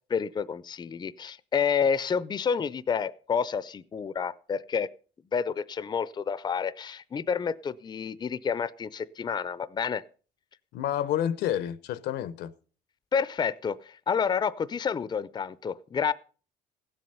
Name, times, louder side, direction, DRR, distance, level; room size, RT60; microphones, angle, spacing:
voice 1, 0.1-4.9 5.3-10.0 13.1-16.1, left 6 dB, 25° left, 0.5 m, -29 dB
voice 2, 10.7-12.5, left 10 dB, 75° left, 0.7 m, -29 dB
16.5 x 7.8 x 5.5 m
cardioid pair, 110°, 17 cm